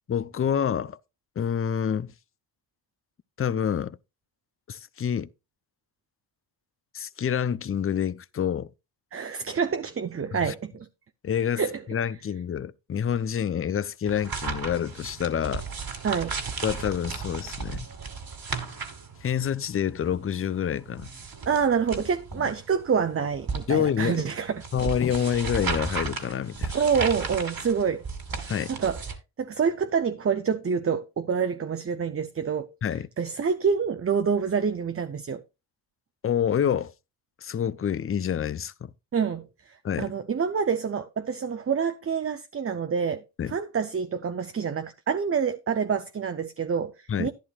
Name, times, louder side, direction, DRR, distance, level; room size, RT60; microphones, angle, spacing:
voice 1, 0.1-1.0 1.4-2.1 3.4-4.0 4.7-5.3 6.9-8.7 10.3-10.5 11.2-11.6 11.9-15.7 16.6-17.9 19.2-21.1 23.7-24.3 24.7-26.8 28.5-28.7 32.8-33.1 36.2-36.9 37.4-38.9 39.8-40.1 43.4-43.6 47.1-47.3, left 8 dB, 30° left, 0.5 m, -27 dB
voice 2, 9.1-10.9 11.6-11.8 16.0-16.4 21.5-24.6 26.7-28.0 28.4-29.0 29.4-32.7 33.2-35.4 39.1-47.3, right 6 dB, 30° right, 0.7 m, -27 dB
sound 1, 14.1-29.2, right 5 dB, 45° right, 2.2 m, -35 dB
11.5 x 10.5 x 2.4 m
cardioid pair, 65°, 48 cm